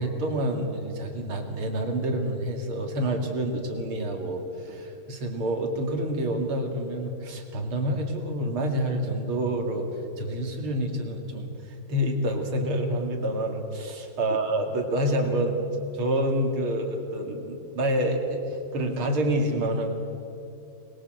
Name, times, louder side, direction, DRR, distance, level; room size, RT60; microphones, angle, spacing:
voice 1, 0.0-9.9 10.2-11.5 11.9-19.9, right 1 dB, 90° right, 3 dB, 3.3 m, -28 dB
25.5 x 21.0 x 7.9 m, 2.7 s
omnidirectional pair, 2.3 m